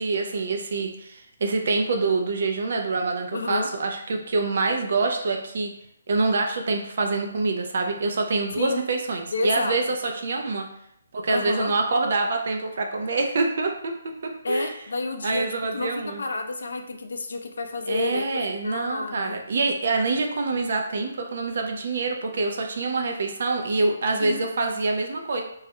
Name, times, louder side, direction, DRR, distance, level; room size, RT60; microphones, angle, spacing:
voice 1, 0.0-5.7 6.1-10.7 11.1-13.9 14.5-14.7 15.2-16.2 17.9-25.4, right 3 dB, 45° right, 3 dB, 0.3 m, -26 dB
voice 2, 3.3-3.7 8.5-8.8 9.3-9.8 11.3-11.7 14.4-15.5 15.7-15.9 16.2-19.4 24.2-24.4, left 3 dB, 65° left, 5 dB, 0.4 m, -30 dB
2.3 x 2.1 x 2.8 m, 0.75 s
hypercardioid pair, 175°, 0 cm